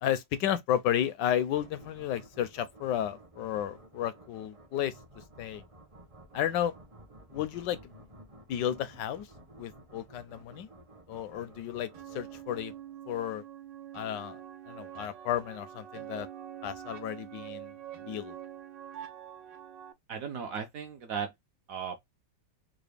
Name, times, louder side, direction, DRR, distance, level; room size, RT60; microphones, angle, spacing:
voice 1, 0.0-4.9 5.4-5.6 6.3-6.7 7.3-7.8 8.5-9.3 9.6-10.7 11.1-12.7 13.1-13.4 13.9-14.4 14.7-16.3 16.6-17.7 18.1-18.4, left 10 dB, 80° left, 1.2 m, -32 dB
sound 1, 1.5-13.2, right 1 dB, 35° right, 0.5 m, -54 dB
sound 2, 11.9-19.9, right 11 dB, 85° right, 1.3 m, -45 dB
voice 2, 20.1-21.3 21.7-22.0, right 7 dB, 65° right, 0.9 m, -36 dB
3.8 x 2.1 x 3.3 m
omnidirectional pair, 1.9 m